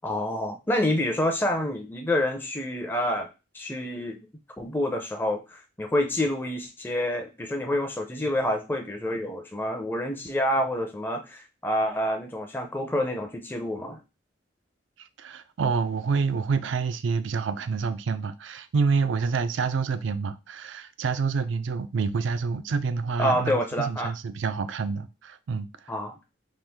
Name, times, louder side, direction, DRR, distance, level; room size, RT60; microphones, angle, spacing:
voice 1, 0.0-3.3 3.5-4.2 4.6-14.0 23.2-24.1 25.9-26.1, left 1 dB, 10° left, 0.4 m, -28 dB
voice 2, 15.2-25.7, right 5 dB, 75° right, 0.4 m, -27 dB
3.0 x 2.4 x 3.4 m
head